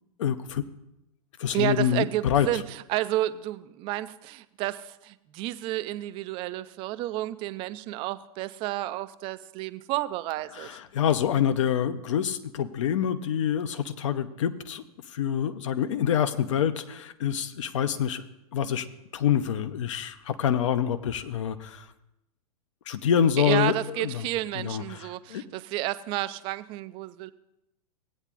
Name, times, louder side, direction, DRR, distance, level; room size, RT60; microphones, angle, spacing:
voice 1, 0.2-0.6 1.4-2.5 10.5-14.8 15.1-18.2 18.5-18.9 19.1-21.9 22.9-24.3 24.5-25.4, left 9 dB, 55° left, 10 dB, 0.7 m, -26 dB
voice 2, 1.5-10.7 23.4-27.3, right 15 dB, 25° right, 14 dB, 0.4 m, -31 dB
17.5 x 8.8 x 2.4 m, 0.90 s
figure-of-eight pair, 100°, 19 cm